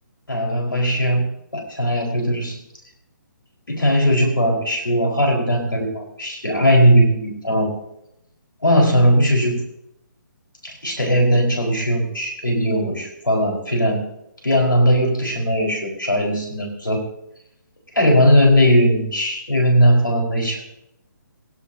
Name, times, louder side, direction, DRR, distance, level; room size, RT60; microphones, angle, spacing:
voice 1, 0.3-1.3 1.5-2.6 3.7-7.7 8.6-9.6 10.6-14.0 14.4-17.0 17.9-20.6, equal, 85° left, 0 dB, 4.9 m, -18 dB
18.5 x 16.5 x 2.9 m, 0.81 s
figure-of-eight pair, 140°, 11 cm